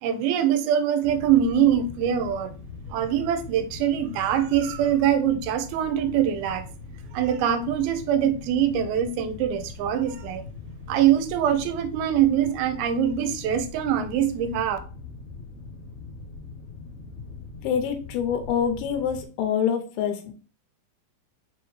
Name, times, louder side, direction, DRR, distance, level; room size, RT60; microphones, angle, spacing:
voice 1, 0.0-2.5 2.9-6.6 7.1-10.4 10.9-14.8, right 9 dB, 85° right, 2.5 m, -23 dB
sound 1, 1.0-19.3, left 4 dB, 65° left, 1.8 m, -41 dB
voice 2, 17.6-20.3, left 8 dB, 85° left, 2.6 m, -26 dB
5.7 x 2.8 x 3.0 m
omnidirectional pair, 4.3 m